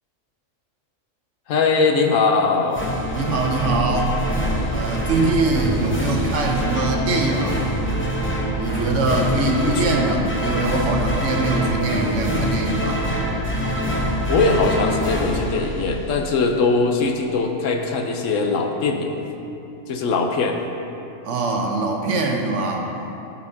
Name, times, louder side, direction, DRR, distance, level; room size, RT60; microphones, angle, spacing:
voice 1, 1.5-2.9 5.5-5.8 9.3-9.8 14.3-19.1 19.9-20.6, left 4 dB, 75° left, 3 dB, 1.1 m, -21 dB
sound 1, 2.7-16.4, equal, 10° left, 0.6 m, -24 dB
voice 2, 3.1-4.2 4.7-7.7 8.6-13.1 21.2-22.9, right 3 dB, 70° right, 1 dB, 1.2 m, -23 dB
14.0 x 5.7 x 2.7 m, 2.8 s
omnidirectional pair, 1.4 m